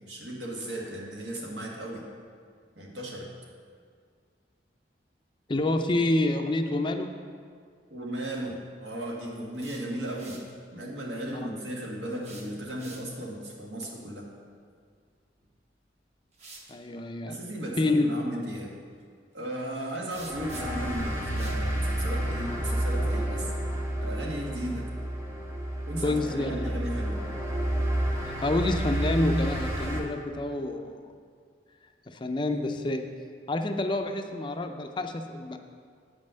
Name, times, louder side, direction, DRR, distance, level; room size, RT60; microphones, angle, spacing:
voice 1, 0.0-2.0 2.7-3.3 7.9-10.4 10.7-14.3 17.3-18.8 19.3-23.5 24.0-24.8 25.9-27.2, right 1 dB, 80° right, -2 dB, 1.6 m, -35 dB
voice 2, 5.5-7.1 16.7-17.4 17.8-18.1 26.0-26.5 28.3-31.1 32.1-33.0 33.5-35.6, left 2 dB, 25° left, 6 dB, 0.4 m, -28 dB
sound 1, 9.4-10.5 12.1-13.3 15.4-15.5 16.3-16.7 20.1-20.9 21.4-21.6, right 3 dB, 35° right, 1.0 m, -49 dB
sound 2, 20.1-30.0, right 1 dB, 15° right, 1.1 m, -30 dB
8.2 x 5.4 x 6.3 m, 2.1 s
head